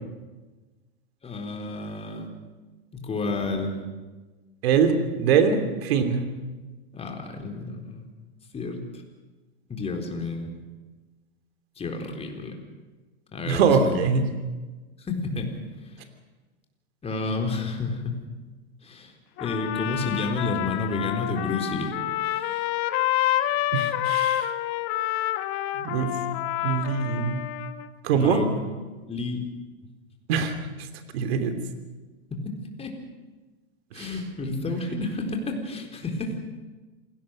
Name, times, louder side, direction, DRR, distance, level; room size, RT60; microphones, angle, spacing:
voice 1, 1.2-2.3 2.9-3.8 6.9-8.0 8.5-9.0 9.7-10.5 11.8-12.6 13.3-14.0 15.0-15.5 15.9-16.0 17.0-18.2 18.8-19.1 19.4-21.9 22.2-22.6 28.1-28.7 29.1-29.4 32.3-32.9 33.9-36.4, left 3 dB, 20° left, 3 dB, 4.1 m, -30 dB
voice 2, 4.6-6.3 13.5-14.3 23.7-24.5 25.8-26.1 26.6-27.4 28.0-28.4 30.3-30.5 31.1-31.5 34.0-34.1, right 6 dB, 65° right, 8 dB, 3.2 m, -23 dB
Trumpet, 19.4-27.9, left 13 dB, 45° left, 1.4 m, -28 dB
27.0 x 18.0 x 6.6 m, 1.2 s
hypercardioid pair, 115°, 32 cm